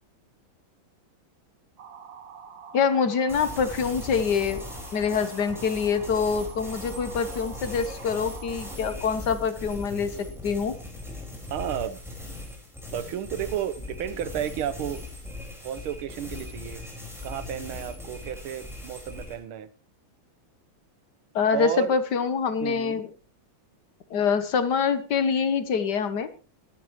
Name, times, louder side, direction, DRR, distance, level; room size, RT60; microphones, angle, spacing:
sound 1, 1.8-8.8, right 7 dB, 65° right, 2.0 m, -46 dB
voice 1, 2.7-4.6 4.9-10.8 21.3-23.1 24.1-26.3, left 6 dB, 60° left, 1.5 m, -25 dB
sound 2, 3.3-19.4, left 2 dB, ahead, 4.5 m, -39 dB
voice 2, 11.5-12.0 12.9-15.0 15.6-16.8 17.2-19.7 21.5-22.0 22.6-23.0, right 10 dB, 85° right, 1.7 m, -32 dB
20.0 x 10.5 x 3.0 m
omnidirectional pair, 2.2 m